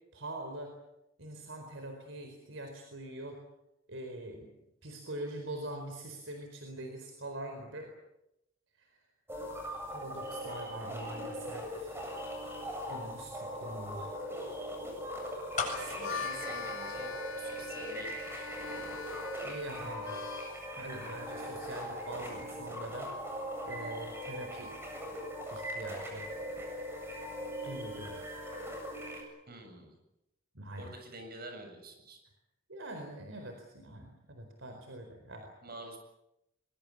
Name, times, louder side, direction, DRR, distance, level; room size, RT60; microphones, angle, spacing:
voice 1, 0.1-0.7 1.2-3.4 3.9-4.5 4.8-7.9 8.8-8.9 9.9-12.2 12.9-14.2 19.2-20.2 20.8-23.1 23.7-24.7 25.5-26.3 27.6-28.3 30.5-30.9 32.7-35.5, right 1 dB, 70° right, 4 dB, 4.4 m, -43 dB
sound 1, 9.3-29.2, equal, 10° right, 8.0 m, -40 dB
sound 2, 15.5-17.6 17.9-18.0, left 5 dB, 40° left, 7.4 m, -38 dB
voice 2, 15.6-17.1 17.4-18.8 29.5-30.0 30.8-32.2 35.6-36.0, right 2 dB, 50° right, 5 dB, 7.6 m, -48 dB
Harmonica, 15.8-20.7, left 5 dB, 90° left, 1.1 m, -42 dB
23.0 x 23.0 x 8.6 m, 0.85 s
head